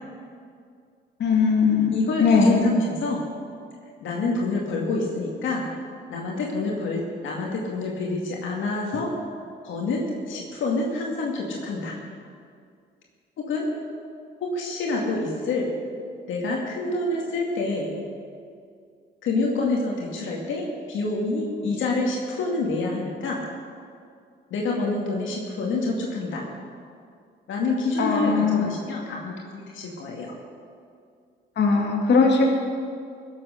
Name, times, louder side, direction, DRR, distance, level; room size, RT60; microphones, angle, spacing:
voice 1, 1.2-2.6 28.0-28.7 31.6-32.5, left 4 dB, 60° left, 0 dB, 2.3 m, -20 dB
voice 2, 1.9-3.2 4.0-5.7 6.1-9.1 9.6-11.9 13.4-13.7 14.4-15.7 16.3-17.9 19.2-23.5 24.5-26.4 27.5-30.3, left 3 dB, 75° left, -2 dB, 2.1 m, -27 dB
17.0 x 7.7 x 6.5 m, 2.3 s
cardioid pair, 90°, 20 cm